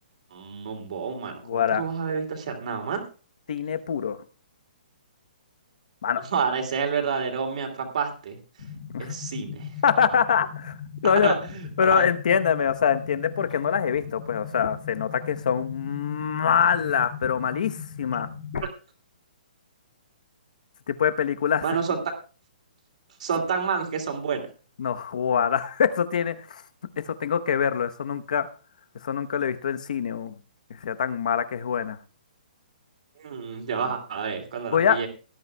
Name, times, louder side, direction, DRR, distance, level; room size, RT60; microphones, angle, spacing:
voice 1, 0.3-3.0 6.3-8.4 9.0-9.7 11.0-11.7 12.0-12.1 21.6-22.0 23.2-24.5 33.2-35.1, right 6 dB, 50° right, 5 dB, 2.6 m, -29 dB
voice 2, 1.4-1.8 3.5-4.2 6.0-6.3 8.9-9.1 9.8-10.8 11.0-11.3 11.8-18.3 20.9-21.6 24.8-26.6 27.0-28.5 29.0-30.4 30.8-32.0 34.7-35.0, left 7 dB, 55° left, 10 dB, 1.0 m, -24 dB
sound 1, 8.6-18.6, left 7 dB, 85° left, 2.0 m, -38 dB
18.5 x 11.0 x 2.3 m, 0.36 s
hypercardioid pair, 175°, 5 cm